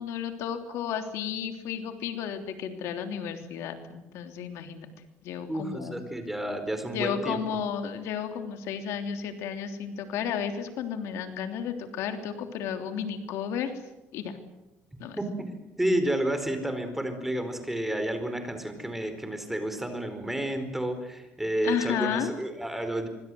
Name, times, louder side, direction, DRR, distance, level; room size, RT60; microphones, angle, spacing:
voice 1, 0.0-4.9 5.2-6.0 6.9-13.7 14.1-14.4 15.0-15.2 21.6-22.3, left 8 dB, 80° left, 7 dB, 3.3 m, -33 dB
voice 2, 5.5-7.4 15.2-15.5 15.8-23.1, right 1 dB, 5° right, 8 dB, 4.6 m, -30 dB
26.0 x 24.5 x 7.9 m, 0.96 s
cardioid pair, 130°, 5 cm